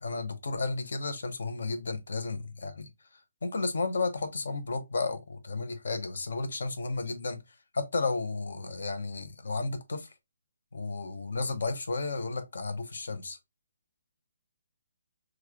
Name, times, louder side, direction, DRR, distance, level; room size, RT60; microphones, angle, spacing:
voice 1, 0.0-2.9 3.4-7.4 7.7-10.1 10.7-13.4, left 3 dB, 80° left, 0.8 m, -33 dB
3.1 x 2.4 x 3.5 m
hypercardioid pair, 170°, 0 cm